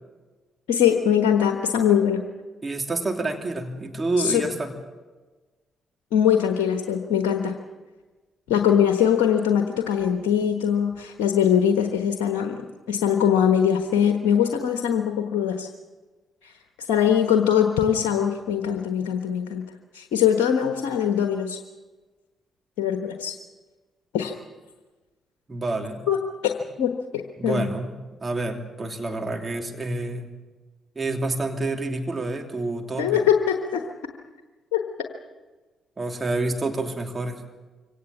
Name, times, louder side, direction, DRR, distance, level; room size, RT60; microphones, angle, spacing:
voice 1, 0.7-2.2 4.2-4.4 6.1-7.6 8.5-15.7 16.4-16.5 16.9-19.6 19.9-21.6 22.8-23.4 24.1-24.3 26.1-26.5 26.8-27.6 33.0-33.8 34.7-34.8, left 9 dB, 75° left, 5 dB, 1.3 m, -22 dB
voice 2, 2.6-4.7 25.5-26.0 27.4-27.9 28.2-30.3 30.9-33.2 36.0-37.4, right 2 dB, 30° right, 4 dB, 3.0 m, -28 dB
24.5 x 17.5 x 7.2 m, 1.3 s
hypercardioid pair, 45°, 0 cm